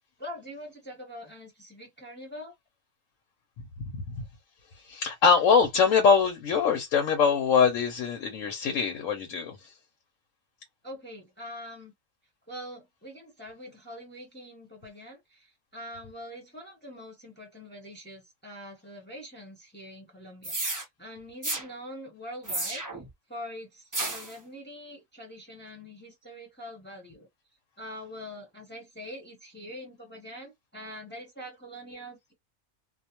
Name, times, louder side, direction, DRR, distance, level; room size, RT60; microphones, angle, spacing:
voice 1, 0.2-2.5 10.8-11.9 12.5-22.8 23.3-27.3 27.8-32.3, equal, 10° left, 0.8 m, -44 dB
voice 2, 4.8-9.7, left 6 dB, 90° left, 1.0 m, -23 dB
sound 1, 20.4-20.8 21.4-21.7 22.5-23.1 23.9-24.3, right 2 dB, 20° right, 0.5 m, -32 dB
2.4 x 2.2 x 2.8 m
omnidirectional pair, 1.3 m